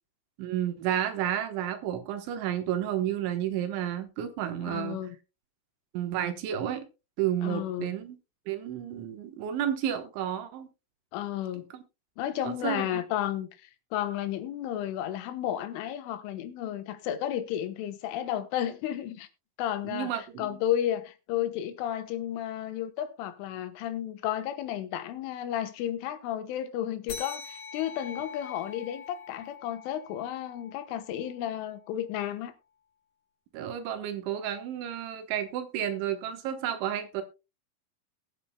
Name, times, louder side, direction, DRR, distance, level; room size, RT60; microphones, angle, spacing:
voice 1, 0.4-5.0 5.9-6.9 7.2-8.2 8.5-10.7 11.7-11.8 12.4-13.0 19.9-20.6 33.5-37.2, right 10 dB, 75° right, 3.5 m, -31 dB
voice 2, 4.6-5.2 7.4-8.0 11.1-11.7 12.2-19.3 19.6-20.1 20.4-32.5, left 11 dB, 80° left, 3.6 m, -32 dB
sound 1, 27.1-32.0, left 6 dB, 65° left, 4.8 m, -44 dB
20.0 x 9.1 x 2.3 m
omnidirectional pair, 5.5 m